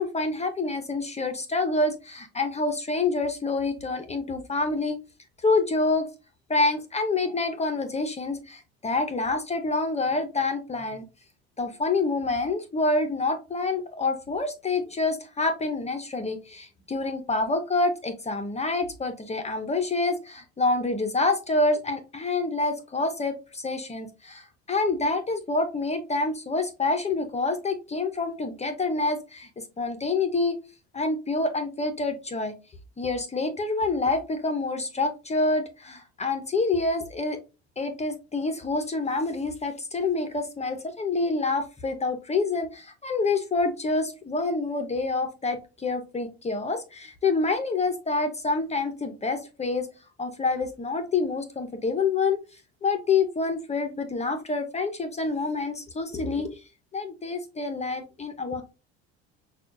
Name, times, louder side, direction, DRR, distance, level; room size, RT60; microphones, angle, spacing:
voice 1, 0.0-5.0 5.4-6.1 6.5-11.1 11.6-30.6 30.9-32.5 33.0-37.4 37.8-49.9 50.2-52.4 52.8-56.6 56.9-58.6, left 3 dB, 20° left, 7 dB, 0.8 m, -27 dB
5.9 x 2.4 x 2.6 m, 0.29 s
supercardioid pair, 85°, 32 cm